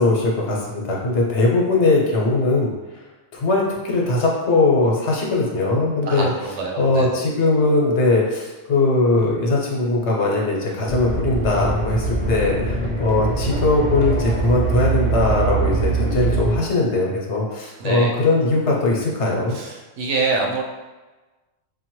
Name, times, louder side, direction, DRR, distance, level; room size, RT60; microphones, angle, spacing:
voice 1, 0.0-2.7 3.3-6.3 6.8-19.6, left 2 dB, 70° left, -2 dB, 1.1 m, -20 dB
voice 2, 6.0-7.2 17.8-18.1 19.5-20.6, right 4 dB, 75° right, 0 dB, 0.9 m, -25 dB
sound 1, 10.9-16.6, right 3 dB, 40° left, 0.8 m, -23 dB
5.3 x 2.2 x 3.0 m, 1.2 s
omnidirectional pair, 1.3 m